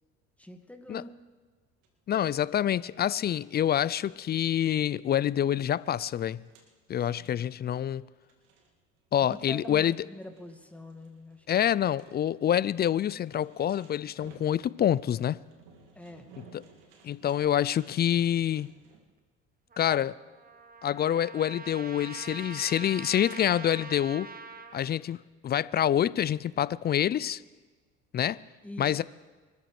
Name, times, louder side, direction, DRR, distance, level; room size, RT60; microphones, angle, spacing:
voice 1, 0.4-1.1 7.0-7.5 9.2-11.7 16.0-16.3 28.6-29.0, left 1 dB, 5° left, 1.9 m, -45 dB
sound 1, 1.8-19.0, right 5 dB, 75° right, 2.3 m, -59 dB
voice 2, 2.1-6.4 6.9-8.0 9.1-10.0 11.5-15.4 16.5-16.6 17.0-18.7 19.8-20.1 20.8-24.3 24.7-27.4 28.1-28.4 28.8-29.0, left 10 dB, 30° left, 0.4 m, -27 dB
Trumpet, 19.7-24.8, right 4 dB, 25° right, 1.3 m, -44 dB
25.0 x 13.5 x 3.3 m
hypercardioid pair, 65°, 37 cm